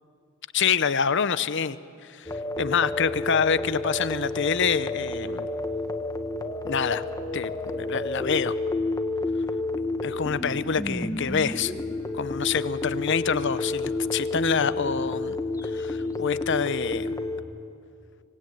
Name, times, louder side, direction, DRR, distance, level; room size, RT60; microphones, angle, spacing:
voice 1, 0.5-1.8 2.1-5.5 6.6-7.0 7.3-8.6 10.0-11.7 12.1-15.4 15.7-17.1, left 6 dB, 60° left, 15 dB, 0.8 m, -26 dB
sound 1, 2.3-17.4, left 2 dB, 15° left, 1.3 m, -30 dB
25.0 x 19.5 x 9.4 m, 2.4 s
head